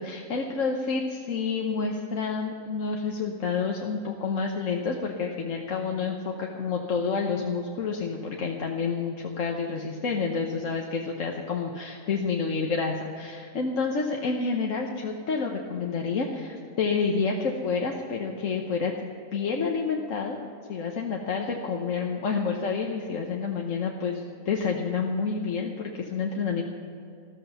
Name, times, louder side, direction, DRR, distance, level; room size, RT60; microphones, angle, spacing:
voice 1, 0.0-20.4 20.7-26.6, left 5 dB, 65° left, 0 dB, 1.4 m, -29 dB
14.5 x 13.5 x 5.6 m, 2.5 s
omnidirectional pair, 1.5 m